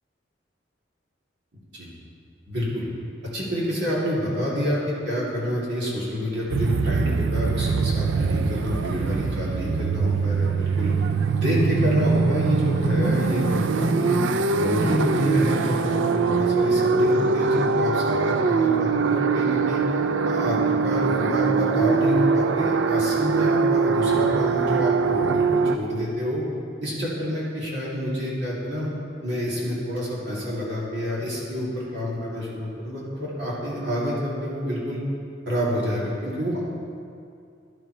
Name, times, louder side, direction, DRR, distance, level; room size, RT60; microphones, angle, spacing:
voice 1, 2.5-2.8 3.3-10.9 11.3-14.2 14.6-19.8 20.2-26.4 26.8-28.9 29.2-35.0 35.5-36.6, equal, 65° right, -6 dB, 2.7 m, -27 dB
sound 1, 6.5-25.8, right 4 dB, 85° right, 0.4 m, -22 dB
12.5 x 11.5 x 3.2 m, 2.4 s
head